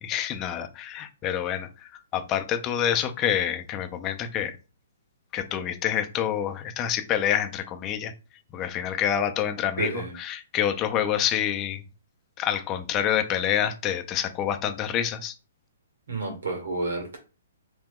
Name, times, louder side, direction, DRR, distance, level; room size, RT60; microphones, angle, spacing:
voice 1, 0.0-4.6 5.3-8.1 8.5-11.8 12.4-15.3, left 10 dB, 25° left, 0.5 m, -27 dB
voice 2, 9.8-10.1 16.1-17.2, right 3 dB, 80° right, 1.5 m, -30 dB
2.9 x 2.2 x 3.6 m
hypercardioid pair, 145°, 0 cm